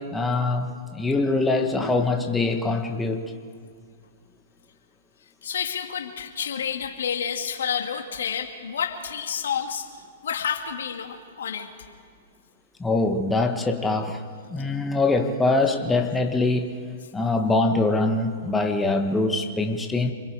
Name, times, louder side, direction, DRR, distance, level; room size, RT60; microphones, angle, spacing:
voice 1, 0.0-3.2 12.8-14.2 14.5-16.8 17.1-20.1, left 2 dB, 10° left, 4 dB, 1.6 m, -23 dB
voice 2, 5.4-9.9 10.2-11.7 14.6-14.7, left 7 dB, 75° left, 5 dB, 2.3 m, -29 dB
28.5 x 22.0 x 5.0 m, 2.1 s
hypercardioid pair, 120°, 0 cm